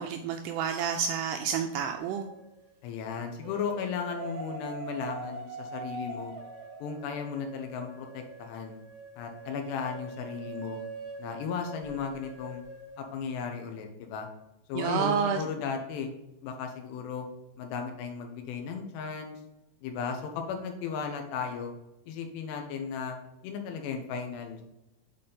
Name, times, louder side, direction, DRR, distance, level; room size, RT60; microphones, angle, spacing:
voice 1, 0.0-2.3 14.8-15.4, right 7 dB, 85° right, 4 dB, 2.4 m, -29 dB
sound 1, 2.0-2.7 3.4-13.4, right 3 dB, 65° right, 3.4 m, -43 dB
voice 2, 2.8-6.3 6.8-8.8 9.2-10.8 11.2-12.6 13.0-14.3 14.7-16.1 16.4-17.3 17.6-19.4 19.8-21.7 22.1-24.6, left 6 dB, 80° left, 4 dB, 2.9 m, -35 dB
8.6 x 4.1 x 3.8 m, 0.93 s
omnidirectional pair, 5.2 m